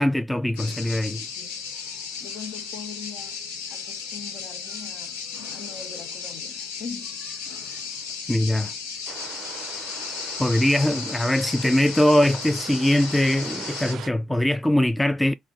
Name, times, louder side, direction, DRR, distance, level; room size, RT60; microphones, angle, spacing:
voice 1, 0.0-1.3 8.3-8.7 10.4-15.3, left 1 dB, 10° left, 0.3 m, -22 dB
sound 1, 0.6-13.9, left 6 dB, 90° left, 0.8 m, -35 dB
voice 2, 2.2-3.4 3.7-5.2 5.5-7.2, left 6 dB, 55° left, 0.7 m, -41 dB
sound 2, 9.1-14.1, right 10 dB, 70° right, 0.4 m, -40 dB
4.0 x 2.1 x 3.6 m
hypercardioid pair, 60°, 0 cm